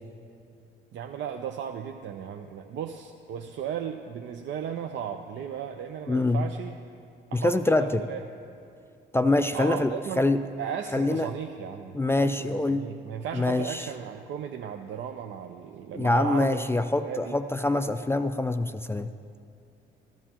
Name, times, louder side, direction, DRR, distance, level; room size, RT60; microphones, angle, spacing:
voice 1, 0.9-6.8 7.3-8.2 9.5-10.3 10.6-16.6 17.0-17.4, right 8 dB, 70° right, 5 dB, 0.5 m, -35 dB
voice 2, 6.1-6.4 7.3-8.0 9.1-9.9 10.2-10.4 10.9-11.3 11.9-12.9 13.3-13.9 15.9-19.1, left 2 dB, 10° left, 9 dB, 0.3 m, -25 dB
13.5 x 12.5 x 2.9 m, 2.6 s
cardioid pair, 90°, 20 cm